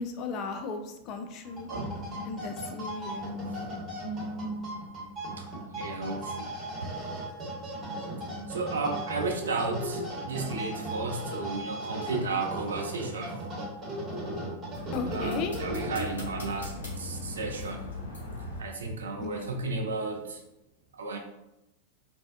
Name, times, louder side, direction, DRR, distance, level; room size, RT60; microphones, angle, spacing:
voice 1, 0.0-1.7 2.2-3.3 14.9-15.6 19.2-19.6, left 4 dB, 40° left, 5 dB, 0.3 m, -36 dB
sound 1, 1.4-16.4, right 1 dB, 30° right, 1.0 m, -37 dB
voice 2, 5.7-6.5 6.8-6.9 8.5-13.4 15.1-17.9 18.6-20.4 20.9-21.2, right 3 dB, 70° right, 2 dB, 0.4 m, -33 dB
sound 2, 14.7-18.6, left 3 dB, 70° left, 0.8 m, -39 dB
2.5 x 2.1 x 2.4 m, 0.89 s
figure-of-eight pair, 90°, 0 cm